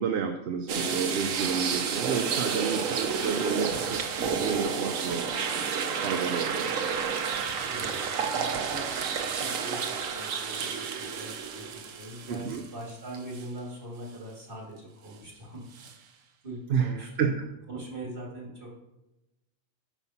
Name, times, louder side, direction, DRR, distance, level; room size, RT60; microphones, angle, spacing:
voice 1, 0.0-5.4 5.8-6.7 12.3-12.6 16.7-17.3, right 6 dB, 60° right, 5 dB, 0.9 m, -30 dB
sound 1, 0.7-12.9 13.3-13.4 15.8-15.9, right 6 dB, 80° right, 1.3 m, -30 dB
voice 2, 7.7-16.1 16.4-17.3 17.7-18.7, right 1 dB, 40° right, -2 dB, 2.8 m, -42 dB
9.4 x 6.0 x 5.8 m, 0.97 s
omnidirectional pair, 1.4 m